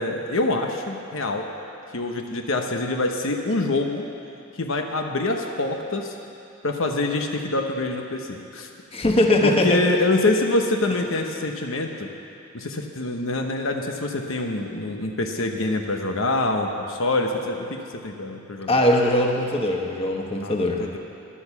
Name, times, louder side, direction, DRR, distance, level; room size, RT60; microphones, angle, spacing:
voice 1, 0.0-1.5 1.9-4.0 4.6-6.1 6.6-8.7 9.4-12.1 12.5-18.8 20.4-20.5 20.8-21.0, left 2 dB, 70° left, 3 dB, 1.0 m, -25 dB
voice 2, 8.9-9.8 18.7-20.8, left 1 dB, 25° left, 1 dB, 1.2 m, -20 dB
13.0 x 11.0 x 7.1 m, 2.6 s
head